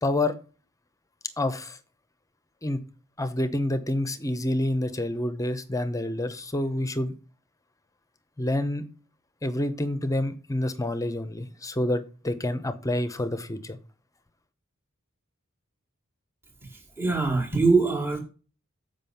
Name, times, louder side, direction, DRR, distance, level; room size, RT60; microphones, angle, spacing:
voice 1, 0.0-0.3 1.4-1.8 2.6-2.8 3.2-7.1 8.4-8.8 9.4-13.8, left 1 dB, 15° left, 0.8 m, -28 dB
voice 2, 17.0-18.2, right 3 dB, 10° right, 1.6 m, -22 dB
7.5 x 5.4 x 6.8 m
head